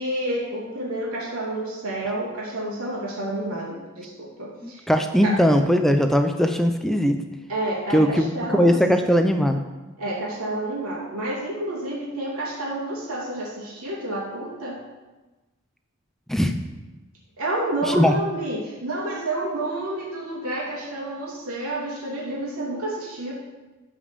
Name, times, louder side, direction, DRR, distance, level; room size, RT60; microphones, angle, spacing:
voice 1, 0.0-4.8 5.2-5.3 7.5-8.8 10.0-14.8 17.4-23.3, right 1 dB, 80° right, -5 dB, 2.9 m, -29 dB
voice 2, 4.6-7.2 7.9-9.6 16.3-16.5 17.9-18.1, equal, ahead, 6 dB, 0.5 m, -20 dB
12.5 x 5.2 x 6.9 m, 1.1 s
head